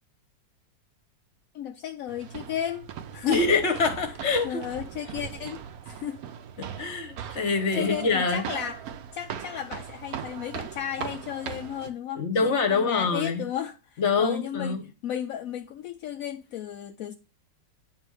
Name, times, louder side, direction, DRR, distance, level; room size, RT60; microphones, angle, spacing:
voice 1, 1.5-3.4 4.4-6.2 7.8-8.8 9.1-14.8 15.0-17.1, left 10 dB, 65° left, 0.8 m, -34 dB
sound 1, 2.1-11.9, right 9 dB, 65° right, 1.0 m, -39 dB
voice 2, 3.3-4.6 6.6-8.4 12.1-13.4 14.0-14.9, left 4 dB, 45° left, 1.3 m, -25 dB
9.2 x 3.5 x 4.8 m
omnidirectional pair, 1.9 m